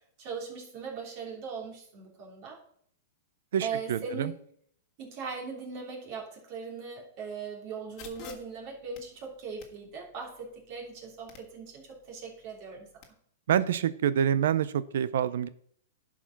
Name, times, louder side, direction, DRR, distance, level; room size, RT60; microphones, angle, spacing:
voice 1, 0.2-2.6 3.6-4.4 5.0-12.9, right 5 dB, 40° right, -1 dB, 3.2 m, -39 dB
voice 2, 3.5-4.3 13.5-15.5, right 9 dB, 70° right, 16 dB, 0.6 m, -27 dB
sound 1, 8.0-13.1, left 7 dB, 35° left, 1.6 m, -54 dB
11.0 x 4.8 x 5.9 m, 0.64 s
hypercardioid pair, 155°, 0 cm